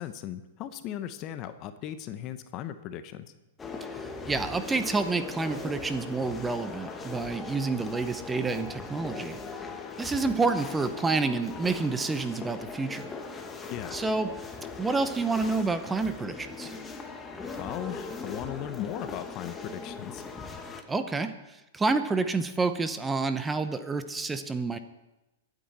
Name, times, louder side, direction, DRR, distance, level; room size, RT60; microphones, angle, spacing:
voice 1, 0.0-3.3 13.7-14.0 17.6-20.2, left 11 dB, 40° left, 11 dB, 1.0 m, -37 dB
sound 1, 3.6-20.8, left 4 dB, 15° left, 1.5 m, -40 dB
voice 2, 3.8-9.4 10.0-13.1 13.9-14.3 14.8-16.7 20.9-21.3 21.7-24.8, right 3 dB, 10° right, 10 dB, 0.9 m, -29 dB
23.5 x 9.2 x 4.3 m, 1.0 s
hypercardioid pair, 110°, 0 cm